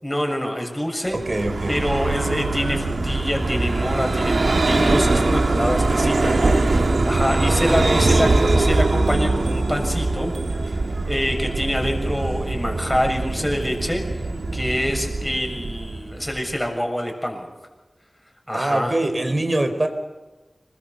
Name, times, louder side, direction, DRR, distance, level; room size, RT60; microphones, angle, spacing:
voice 1, 0.0-1.2 1.7-10.3 10.7-10.8 11.1-14.0 14.5-17.5 18.5-18.9, equal, 10° left, 2 dB, 7.0 m, -26 dB
voice 2, 1.1-1.8 7.4-8.2 18.5-19.9, right 1 dB, 45° right, 8 dB, 4.2 m, -24 dB
Vehicle, 1.1-16.6, right 2 dB, 85° right, 2.2 m, -22 dB
26.5 x 21.5 x 7.0 m, 1.2 s
wide cardioid pair, 55°, 0 cm